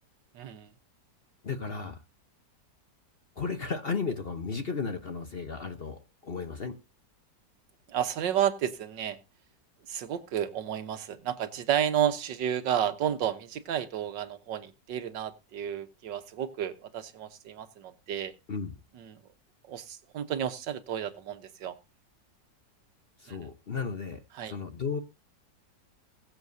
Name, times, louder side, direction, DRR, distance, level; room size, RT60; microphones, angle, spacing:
voice 1, 0.3-0.7 7.9-9.2 9.9-18.3 19.0-19.2 19.7-21.7 23.3-23.4 24.4-24.5, right 10 dB, 80° right, 10 dB, 1.7 m, -31 dB
voice 2, 1.4-2.0 3.4-6.7 18.5-18.7 23.2-25.0, left 5 dB, 40° left, 8 dB, 1.0 m, -34 dB
21.0 x 7.7 x 2.7 m, 0.27 s
omnidirectional pair, 1.9 m